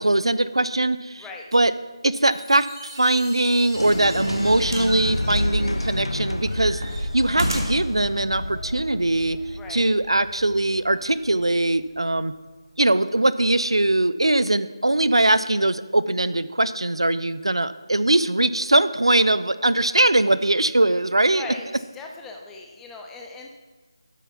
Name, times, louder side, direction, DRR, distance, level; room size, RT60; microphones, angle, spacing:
voice 1, 0.0-1.3 1.5-1.7 2.0-6.9 7.1-9.4 9.7-12.3 12.8-21.5, right 2 dB, 70° right, 15 dB, 0.4 m, -21 dB
Chime, 2.2-6.9, right 1 dB, 25° right, 2.8 m, -42 dB
sound 1, 3.4-3.6 4.6-5.0 5.3-6.1 6.5-7.9 8.8-8.9, right 1 dB, 45° right, 1.7 m, -31 dB
sound 2, 3.7-11.8, left 1 dB, 70° left, 0.7 m, -30 dB
voice 2, 9.6-9.9 21.3-23.5, left 3 dB, 5° left, 1 dB, 0.4 m, -39 dB
8.4 x 6.7 x 5.7 m, 1.3 s
figure-of-eight pair, 160°, 3 cm